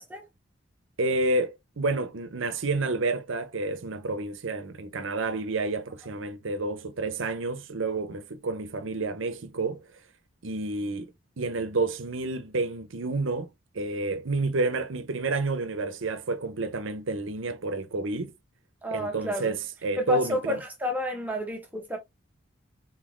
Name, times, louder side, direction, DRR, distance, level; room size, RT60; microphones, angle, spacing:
voice 1, 1.0-9.8 10.4-18.3 18.9-20.6, right 3 dB, 75° right, 0.8 m, -30 dB
voice 2, 18.8-19.5 20.0-22.0, left 1 dB, 10° right, 1.1 m, -30 dB
4.3 x 3.9 x 3.1 m
head